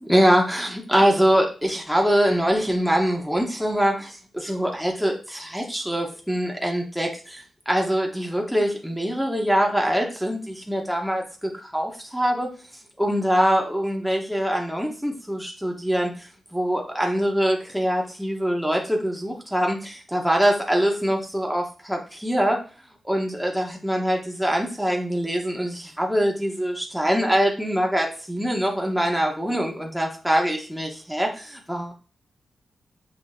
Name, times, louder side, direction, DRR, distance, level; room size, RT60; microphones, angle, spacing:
voice 1, 0.0-12.5 13.0-22.6 23.0-31.9, equal, ahead, 0 dB, 1.0 m, -23 dB
5.8 x 2.5 x 2.7 m, 0.37 s
supercardioid pair, 40°, 0 cm